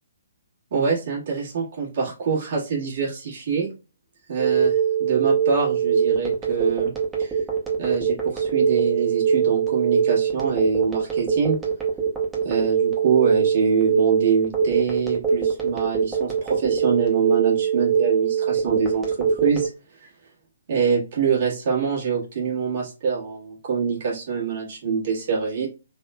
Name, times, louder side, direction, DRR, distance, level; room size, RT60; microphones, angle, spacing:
voice 1, 0.7-3.7 4.3-6.9 7.2-7.4 7.8-11.6 12.4-19.7 20.7-25.7, right 6 dB, 45° right, -4 dB, 1.5 m, -25 dB
Telephone, 4.4-19.7, right 7 dB, 10° right, 0.9 m, -22 dB
3.5 x 3.1 x 2.2 m, 0.30 s
figure-of-eight pair, 130°, 0 cm